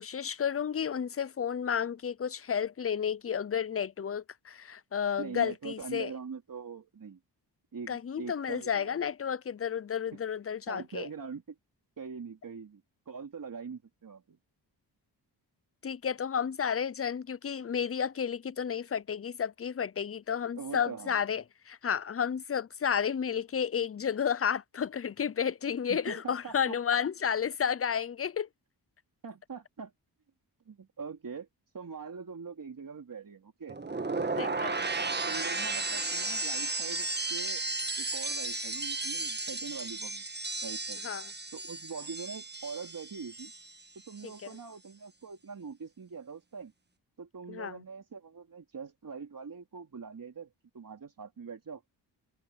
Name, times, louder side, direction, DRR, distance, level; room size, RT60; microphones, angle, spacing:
voice 1, 0.0-6.1 7.9-11.1 15.8-28.5 34.4-34.7 41.0-41.3 47.5-47.8, left 7 dB, 35° left, 0.7 m, -32 dB
voice 2, 5.2-7.2 7.7-9.0 10.1-10.2 10.7-11.5 12.0-14.4 20.5-21.2 25.9-26.8 29.2-29.9 30.7-31.5 31.7-33.8 34.2-34.8 35.3-37.6 38.0-40.2 40.6-41.1 41.5-43.5 44.1-46.7 47.2-51.8, right 5 dB, 50° right, 3.5 m, -43 dB
sound 1, 33.7-43.8 44.1-44.5, right 3 dB, 25° right, 1.6 m, -34 dB
cardioid pair, 65°, 41 cm